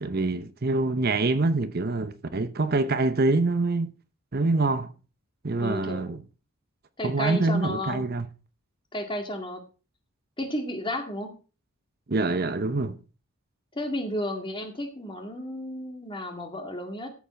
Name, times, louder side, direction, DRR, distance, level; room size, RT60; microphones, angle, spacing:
voice 1, 0.0-3.9 4.3-4.9 5.4-6.2 7.0-8.3 12.1-13.0, right 3 dB, 45° right, 0.8 m, -25 dB
voice 2, 5.6-6.2 7.0-8.0 8.9-9.6 10.4-11.3 13.7-17.1, left 1 dB, 20° left, 2.1 m, -32 dB
14.0 x 7.3 x 4.4 m
head